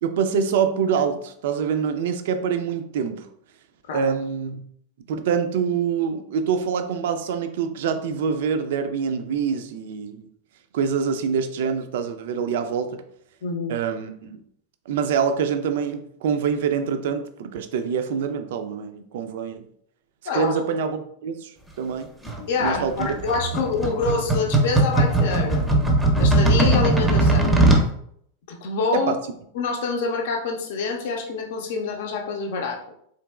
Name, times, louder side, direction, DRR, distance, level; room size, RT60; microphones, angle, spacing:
voice 1, 0.0-3.2 3.9-4.6 5.1-10.3 10.7-12.9 13.7-14.4 14.9-19.7 20.3-21.5 21.8-22.1 22.6-23.1 28.9-29.2, right 6 dB, 55° right, 7 dB, 0.4 m, -25 dB
voice 2, 13.4-13.8 20.3-20.6 22.5-25.6 26.2-27.5 28.5-29.1 29.5-32.9, left 4 dB, 55° left, 2 dB, 0.6 m, -26 dB
sound 1, 22.2-27.9, right 2 dB, 5° right, 0.6 m, -19 dB
3.8 x 2.8 x 2.2 m, 0.68 s
figure-of-eight pair, 90°, 0 cm